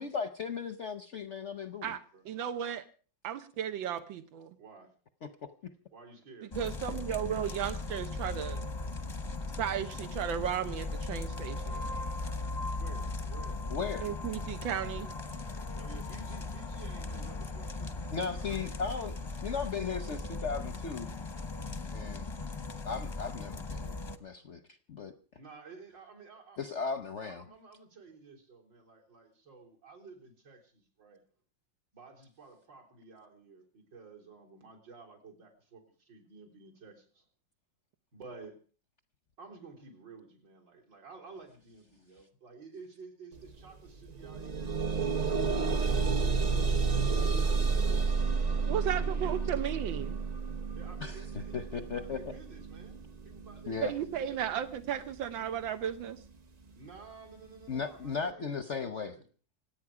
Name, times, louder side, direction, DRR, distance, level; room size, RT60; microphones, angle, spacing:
voice 1, 0.0-1.9 5.2-5.5 13.7-14.1 18.1-19.1 19.4-21.1 21.9-22.3 22.8-24.6 24.9-25.1 26.6-27.4 51.0-52.2 53.7-53.9 57.7-59.2, left 5 dB, 55° left, 10 dB, 0.8 m, -36 dB
voice 2, 2.2-2.8 3.2-4.5 6.6-8.7 9.6-11.8 14.0-15.1 48.7-50.2 53.8-56.2, right 9 dB, 85° right, 8 dB, 1.6 m, -34 dB
voice 3, 4.6-4.9 5.9-6.6 12.7-13.7 15.7-18.8 25.3-26.6 27.2-31.2 31.9-37.3 38.1-38.6 39.4-44.8 45.5-48.6 48.8-49.4 50.8-54.0 54.3-54.4 56.7-59.2, right 4 dB, 70° right, 0 dB, 4.3 m, -52 dB
sound 1, 6.5-24.2, left 3 dB, 25° left, 0.7 m, -38 dB
sound 2, 43.4-43.5 43.9-54.9 55.7-55.8 56.2-56.3, right 4 dB, 45° right, 0.5 m, -31 dB
26.5 x 8.9 x 4.9 m, 0.40 s
omnidirectional pair, 2.0 m